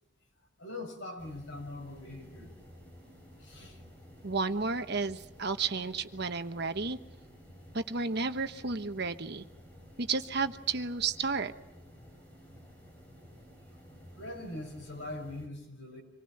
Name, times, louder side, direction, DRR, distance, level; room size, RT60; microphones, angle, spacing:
voice 1, 0.6-2.5 3.4-3.8 14.2-16.0, left 2 dB, 80° left, 2 dB, 7.1 m, -42 dB
sound 1, 1.2-15.5, equal, 10° left, 6.8 m, -53 dB
voice 2, 4.2-7.0 7.7-9.4 10.0-11.5, right 4 dB, 60° right, 8 dB, 1.2 m, -32 dB
26.0 x 19.5 x 7.8 m, 0.90 s
head